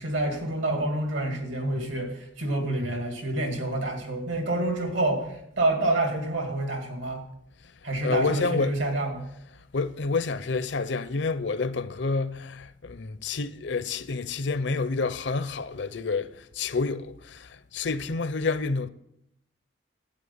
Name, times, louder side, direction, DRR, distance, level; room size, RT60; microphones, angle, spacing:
voice 1, 0.0-7.2 7.8-9.3, right 2 dB, 75° right, 2.5 m, -28 dB
voice 2, 8.0-8.7 9.7-16.3 16.6-18.9, left 4 dB, 60° left, 0.6 m, -28 dB
11.5 x 8.7 x 5.7 m
head